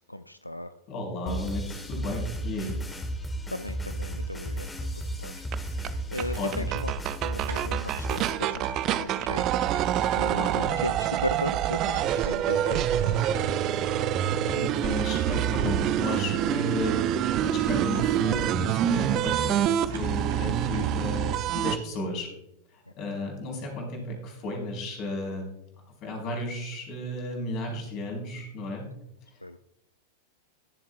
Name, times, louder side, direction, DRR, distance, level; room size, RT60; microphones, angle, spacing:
voice 1, 0.1-0.7 3.5-4.7 5.0-5.5 5.7-6.9 7.2-13.5 29.4-29.6, left 1 dB, 85° left, 12 dB, 0.3 m, -36 dB
voice 2, 0.9-2.8 6.4-6.7 10.4-10.7 14.5-17.0 17.4-22.3 22.7-25.5 26.0-28.8, left 1 dB, 40° left, 0 dB, 4.3 m, -33 dB
sound 1, 1.3-8.3, right 1 dB, 10° left, 1.7 m, -34 dB
sound 2, 5.5-5.6 5.8-5.9 6.2-6.3 6.5-21.8, right 11 dB, 35° right, 0.5 m, -26 dB
sound 3, 5.9-9.5 10.9-11.0 11.3-12.1 12.6-15.3 15.7-17.0 17.6-21.2, right 4 dB, 60° right, 2.8 m, -48 dB
21.0 x 7.4 x 2.4 m, 0.81 s
figure-of-eight pair, 90°, 0 cm